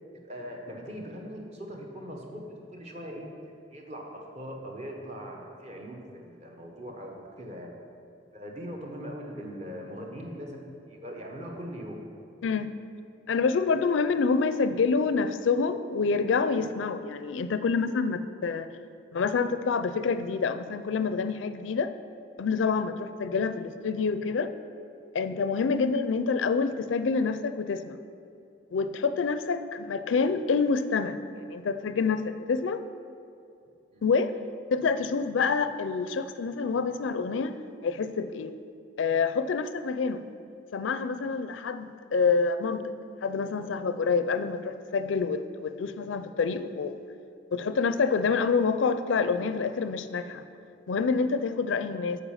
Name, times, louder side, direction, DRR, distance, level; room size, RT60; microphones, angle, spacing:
voice 1, 0.1-3.3 3.7-7.7 8.3-12.0 25.7-25.8 29.2-29.3 33.9-34.1 41.2-41.4 50.3-50.4, equal, 35° right, 0 dB, 1.1 m, -41 dB
voice 2, 13.3-18.7 19.1-21.9 22.4-24.5 25.1-28.0 28.7-32.8 34.0-34.3 34.7-37.6 37.8-38.5 39.0-40.2 40.7-42.8 43.2-47.0 47.5-50.4 50.9-52.2, left 5 dB, 85° left, 11 dB, 0.4 m, -27 dB
8.1 x 5.2 x 7.2 m, 2.6 s
head